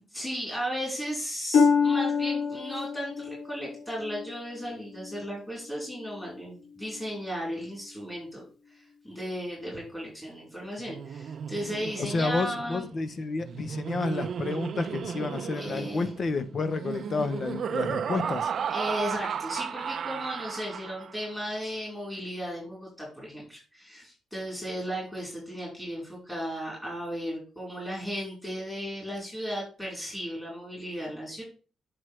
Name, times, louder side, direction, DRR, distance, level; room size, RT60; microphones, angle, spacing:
voice 1, 0.1-12.9 15.5-16.1 18.7-31.4, equal, 10° left, 3.8 m, -35 dB
Harp, 1.5-5.3 5.8-6.2 6.9-7.0, left 5 dB, 85° left, 2.3 m, -27 dB
Laughter, 10.8-21.3, right 7 dB, 55° right, 0.5 m, -34 dB
voice 2, 12.0-18.5, left 4 dB, 40° left, 0.8 m, -30 dB
8.0 x 6.1 x 3.2 m
cardioid pair, 120°, 0 cm